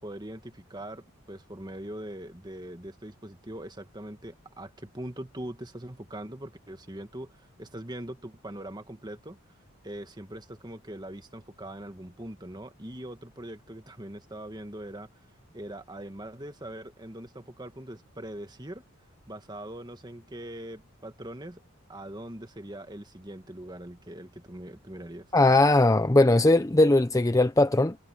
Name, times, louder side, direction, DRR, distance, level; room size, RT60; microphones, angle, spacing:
voice 1, 0.0-9.4 9.8-15.1 15.5-18.8 19.3-21.6 21.9-25.3, right 1 dB, 20° right, 1.7 m, -41 dB
voice 2, 25.3-28.0, left 2 dB, 15° left, 0.5 m, -20 dB
head